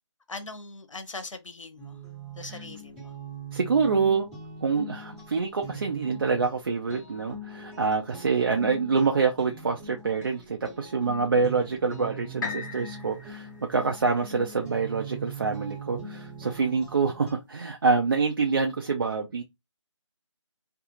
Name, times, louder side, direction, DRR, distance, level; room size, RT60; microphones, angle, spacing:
voice 1, 0.3-2.0 2.4-3.1, left 3 dB, 85° left, 0.7 m, -40 dB
sound 1, 1.8-17.3, right 3 dB, 5° right, 1.3 m, -42 dB
voice 2, 3.5-4.3 4.6-19.4, right 4 dB, 45° right, 0.4 m, -26 dB
sound 2, 12.4-16.3 16.9-17.0, left 5 dB, 40° left, 1.1 m, -40 dB
2.4 x 2.3 x 2.9 m
figure-of-eight pair, 160°, 16 cm